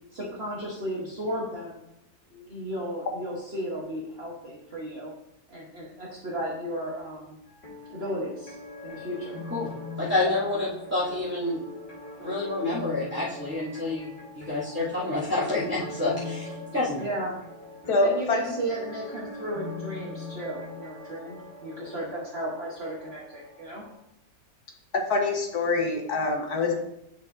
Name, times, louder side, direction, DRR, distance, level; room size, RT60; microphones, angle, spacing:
voice 1, 0.1-1.8 2.3-5.1 5.5-7.4 7.9-8.6 8.8-9.4 17.0-17.4 18.0-23.8, right 1 dB, 45° right, -4 dB, 1.4 m, -34 dB
sound 1, 7.5-23.9, left 3 dB, 50° left, 2.6 m, -42 dB
voice 2, 10.0-11.6 12.2-17.0, left 2 dB, 10° right, -15 dB, 2.7 m, -28 dB
voice 3, 17.9-18.4 24.9-26.7, left 3 dB, 85° left, 2 dB, 1.8 m, -25 dB
9.7 x 6.3 x 2.7 m, 0.84 s
omnidirectional pair, 1.6 m